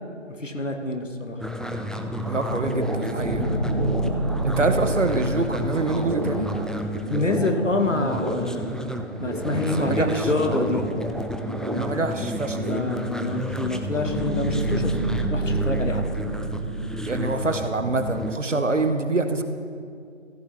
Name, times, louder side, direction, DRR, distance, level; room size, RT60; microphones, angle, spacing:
voice 1, 0.3-1.4 7.1-8.7 9.2-10.8 12.6-15.0 15.3-16.0 18.5-18.6, left 2 dB, 75° left, 4 dB, 1.3 m, -26 dB
sound 1, 1.4-18.4, equal, ahead, 0.3 m, -32 dB
sound 2, 2.2-13.1, equal, 40° right, 0.8 m, -34 dB
voice 2, 2.3-3.5 4.4-6.5 9.8-10.3 11.7-12.6 17.1-19.4, right 2 dB, 75° right, 8 dB, 0.9 m, -25 dB
sound 3, 3.2-7.5 14.0-17.8, right 2 dB, 20° right, 2.3 m, -28 dB
14.5 x 9.6 x 3.2 m, 2.3 s
figure-of-eight pair, 175°, 37 cm